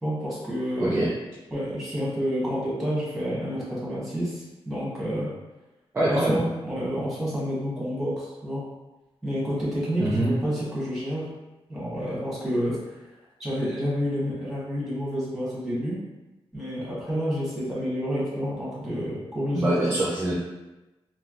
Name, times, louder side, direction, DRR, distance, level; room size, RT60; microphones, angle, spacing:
voice 1, 0.0-1.1 1.5-5.3 6.1-8.6 9.2-11.3 11.7-12.8 13.4-16.0 16.5-19.8, equal, ahead, -8 dB, 1.1 m, -29 dB
voice 2, 0.8-1.1 5.9-6.4 10.0-10.3 19.5-20.3, right 1 dB, 20° right, -6 dB, 0.5 m, -24 dB
3.3 x 2.5 x 2.4 m, 1.1 s
wide cardioid pair, 155°, 10 cm